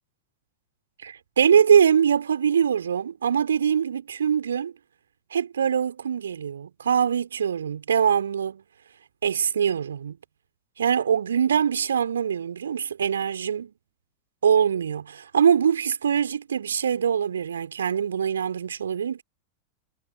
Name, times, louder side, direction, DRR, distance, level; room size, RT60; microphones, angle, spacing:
voice 1, 1.0-4.7 5.3-8.6 9.2-10.2 10.8-13.7 14.4-19.2, right 8 dB, 70° right, 3.9 m, -23 dB
figure-of-eight pair, 90°, 0 cm